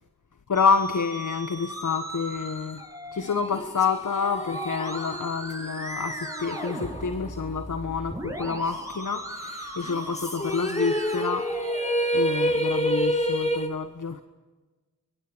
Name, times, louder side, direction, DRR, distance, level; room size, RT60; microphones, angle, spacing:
voice 1, 0.5-2.8 3.1-11.6 12.1-14.2, left 5 dB, 60° left, 8 dB, 1.5 m, -28 dB
Musical instrument, 0.5-12.5, equal, 10° right, 6.9 m, -38 dB
sound 1, 3.5-8.2 8.5-8.6 9.8-13.7, equal, 20° left, 2.6 m, -29 dB
30.0 x 23.5 x 5.2 m, 1.3 s
cardioid pair, 40°, 35 cm